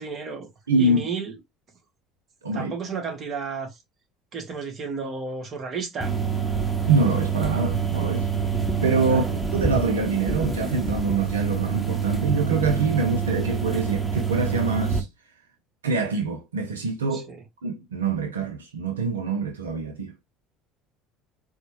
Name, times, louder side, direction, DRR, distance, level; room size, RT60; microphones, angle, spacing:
voice 1, 0.0-0.5 0.7-1.4 2.5-3.8 4.3-6.1 9.1-9.3 17.1-17.4, right 5 dB, 40° right, 1.1 m, -32 dB
voice 2, 0.7-1.0 2.4-2.7 6.9-8.3 8.8-9.2 9.5-15.1 15.8-17.3 17.6-20.1, right 4 dB, 85° right, 0.4 m, -25 dB
sound 1, 6.0-15.0, right 6 dB, 5° right, 0.9 m, -26 dB
4.2 x 2.1 x 2.8 m
hypercardioid pair, 65°, 0 cm